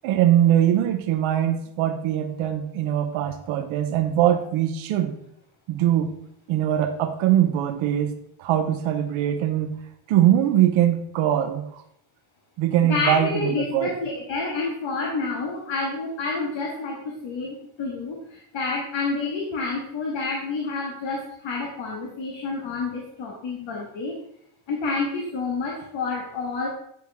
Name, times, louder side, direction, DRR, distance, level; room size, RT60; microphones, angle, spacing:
voice 1, 0.0-5.1 5.7-6.1 6.5-8.1 8.4-9.7 10.1-11.8 12.6-13.9, right 11 dB, 90° right, 6 dB, 0.8 m, -22 dB
voice 2, 12.9-24.2 24.7-26.7, left 3 dB, 70° left, -1 dB, 1.6 m, -29 dB
9.5 x 4.5 x 3.5 m, 0.72 s
cardioid pair, 75°, 47 cm